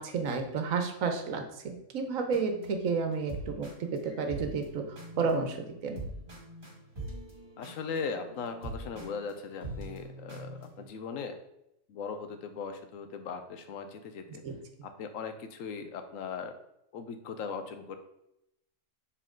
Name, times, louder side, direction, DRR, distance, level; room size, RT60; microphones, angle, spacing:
voice 1, 0.0-6.0 14.4-14.5, right 5 dB, 85° right, 5 dB, 1.3 m, -31 dB
sound 1, 2.3-10.8, right 1 dB, 40° right, 2.1 m, -44 dB
voice 2, 7.6-11.4 11.9-14.4 14.8-16.6 16.9-18.0, left 5 dB, 80° left, 8 dB, 1.1 m, -39 dB
7.3 x 4.1 x 3.7 m, 0.82 s
omnidirectional pair, 1.4 m